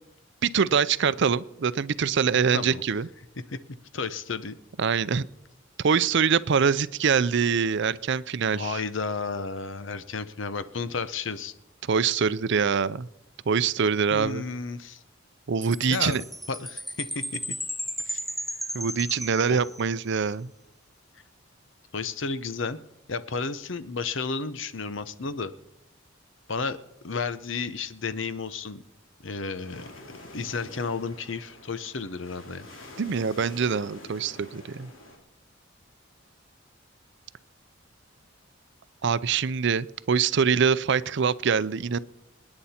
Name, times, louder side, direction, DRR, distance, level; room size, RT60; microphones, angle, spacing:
voice 1, 0.4-3.1 4.8-5.3 5.8-8.8 11.9-13.1 13.5-14.4 15.5-16.2 18.7-20.5 33.0-34.9 39.0-42.0, right 6 dB, 65° right, 16 dB, 0.5 m, -24 dB
voice 2, 3.5-4.6 8.5-11.5 14.1-15.0 15.8-17.4 18.0-18.2 19.5-19.6 21.9-22.8 23.1-25.5 26.5-26.8 27.0-28.8 29.2-29.9 30.3-32.7, left 4 dB, 70° left, 13 dB, 0.9 m, -32 dB
Chime, 15.6-20.1, equal, ahead, 0.5 m, -35 dB
sound 1, 29.5-35.2, left 2 dB, 85° left, 3.2 m, -47 dB
27.5 x 9.8 x 4.4 m, 0.92 s
head